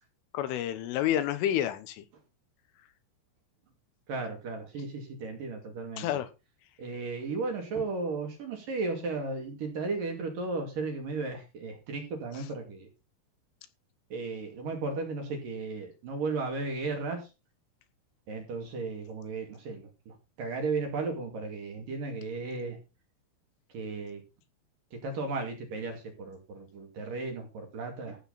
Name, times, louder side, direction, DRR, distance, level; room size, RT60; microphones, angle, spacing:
voice 1, 0.3-2.0 6.0-6.3 12.3-12.4, left 11 dB, 75° left, 3.4 m, -29 dB
voice 2, 4.1-6.1 6.8-12.9 14.1-17.3 18.3-22.8 23.7-24.2 24.9-28.2, right 3 dB, 50° right, 3.5 m, -35 dB
15.5 x 7.9 x 4.1 m
omnidirectional pair, 6.0 m